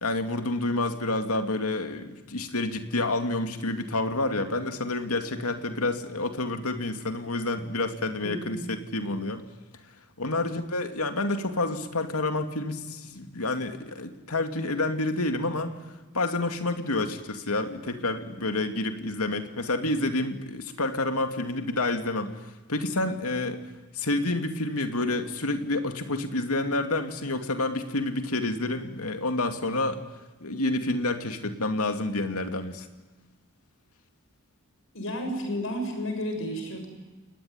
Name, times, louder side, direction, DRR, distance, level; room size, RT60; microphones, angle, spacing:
voice 1, 0.0-9.4 10.2-15.7 16.1-23.6 23.9-30.0 30.4-32.9, left 2 dB, 80° left, 6 dB, 2.5 m, -29 dB
voice 2, 8.2-8.7 34.9-36.9, equal, 60° left, 5 dB, 6.9 m, -32 dB
29.0 x 19.5 x 9.8 m, 1.2 s
head